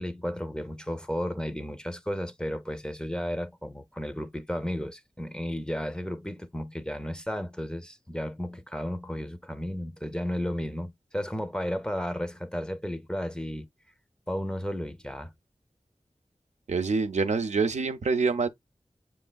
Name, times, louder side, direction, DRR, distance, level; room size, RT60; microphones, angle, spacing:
voice 1, 0.0-13.7 14.3-15.3, equal, 5° left, 0.5 m, -33 dB
voice 2, 16.7-18.5, right 4 dB, 85° right, 0.5 m, -26 dB
6.9 x 3.2 x 2.2 m
wide cardioid pair, 55°, 12 cm